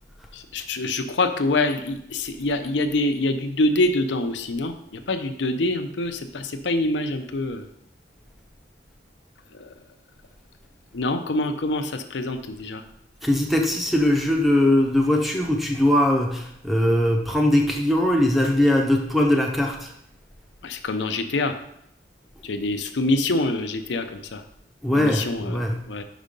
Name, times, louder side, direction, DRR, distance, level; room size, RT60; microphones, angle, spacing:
voice 1, 0.3-7.7 9.5-9.7 10.9-12.8 20.6-21.6 22.4-24.4 24.9-26.0, left 2 dB, 75° left, 7 dB, 0.6 m, -25 dB
voice 2, 13.2-19.9 24.8-25.8, left 1 dB, ahead, 1 dB, 0.7 m, -21 dB
5.4 x 5.1 x 5.2 m, 0.74 s
head